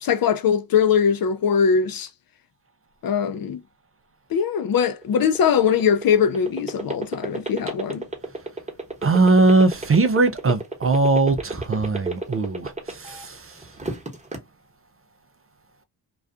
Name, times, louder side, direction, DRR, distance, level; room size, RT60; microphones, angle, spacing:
voice 1, 0.0-2.1 3.0-3.6 4.3-8.1, left 7 dB, 50° left, 0.5 m, -21 dB
sound 1, 5.0-13.2 13.6-14.4, right 2 dB, 15° right, 0.9 m, -30 dB
voice 2, 9.0-12.7 13.0-13.4, right 3 dB, 30° right, 0.4 m, -19 dB
2.3 x 2.3 x 2.5 m
cardioid pair, 60°, 47 cm